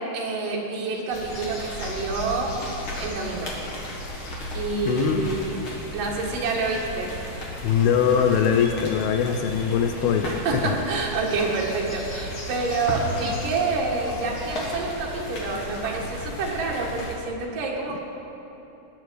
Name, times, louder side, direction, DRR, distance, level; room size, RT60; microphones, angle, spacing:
voice 1, 0.0-2.6 3.0-3.6 4.5-5.6 5.9-7.1 10.3-18.0, right 3 dB, 60° right, -1 dB, 2.8 m, -28 dB
sound 1, 1.1-17.1, equal, 50° left, 1.6 m, -35 dB
voice 2, 4.9-5.3 7.6-10.8, left 7 dB, 80° left, 5 dB, 2.4 m, -22 dB
19.0 x 9.5 x 4.7 m, 3.0 s
omnidirectional pair, 4.9 m